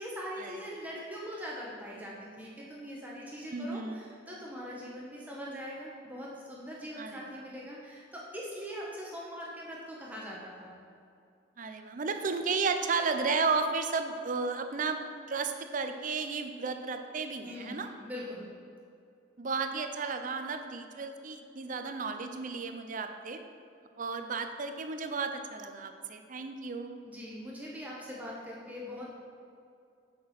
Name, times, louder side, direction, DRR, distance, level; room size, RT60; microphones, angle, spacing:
voice 1, 0.0-10.7 17.4-18.5 27.0-29.1, equal, 10° right, -5 dB, 1.0 m, -42 dB
voice 2, 3.5-4.0 7.0-7.2 11.6-15.0 15.3-17.9 19.4-23.4 24.0-27.0, right 4 dB, 45° right, 7 dB, 0.5 m, -33 dB
8.6 x 6.1 x 4.2 m, 2.5 s
head